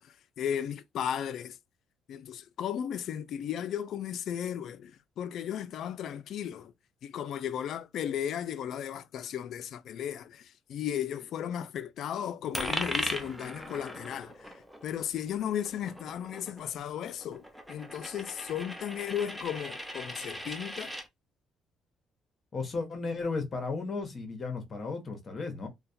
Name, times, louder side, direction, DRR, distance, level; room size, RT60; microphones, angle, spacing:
voice 1, 0.0-1.6 2.1-6.7 7.0-20.9, left 9 dB, 70° left, 0.3 m, -35 dB
Coin (dropping), 12.5-21.1, equal, 5° right, 0.6 m, -39 dB
voice 2, 22.5-25.7, left 4 dB, 40° left, 0.9 m, -34 dB
2.3 x 2.1 x 2.6 m
cardioid pair, 85°, 0 cm